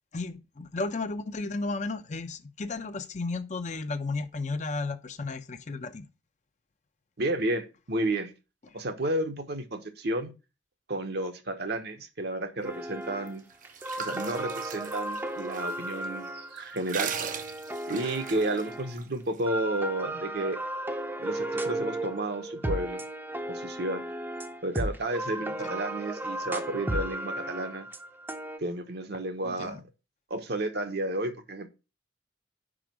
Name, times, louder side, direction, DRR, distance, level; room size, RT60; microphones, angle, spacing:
voice 1, 0.1-6.1 29.4-29.8, left 3 dB, 40° left, 0.6 m, -33 dB
voice 2, 7.2-8.3 8.7-10.3 10.9-13.4 14.0-17.1 17.9-20.6 21.2-23.0 23.5-24.0 24.6-27.8 28.6-29.8 30.3-31.7, right 1 dB, 65° right, 1.0 m, -32 dB
sound 1, 12.6-13.4 13.6-19.0 19.5-28.6, right 1 dB, 10° right, 0.6 m, -35 dB
sound 2, 13.3-15.7 16.0-16.1 16.6-19.0, right 7 dB, 50° right, 0.6 m, -38 dB
5.1 x 4.9 x 6.0 m
head